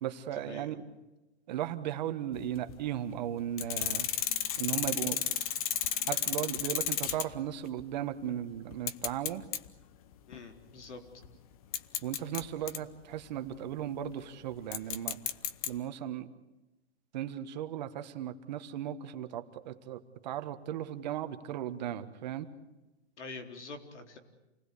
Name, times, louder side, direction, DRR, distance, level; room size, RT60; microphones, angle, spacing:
voice 1, 0.0-0.8 1.5-4.1 4.6-5.2 6.1-9.5 12.0-15.2 15.7-16.3 17.1-22.5, right 11 dB, 40° right, 9 dB, 1.5 m, -36 dB
sound 1, 2.4-2.8 3.6-7.5 7.8-7.9 8.7-9.7 10.1-10.4 11.2-11.3 11.7-12.8 14.7-15.7, left 11 dB, 30° left, 0.9 m, -32 dB
voice 2, 10.3-11.0 23.2-24.2, left 3 dB, 85° left, 5 dB, 4.2 m, -45 dB
28.5 x 19.5 x 8.4 m, 1.0 s
hypercardioid pair, 165°, 34 cm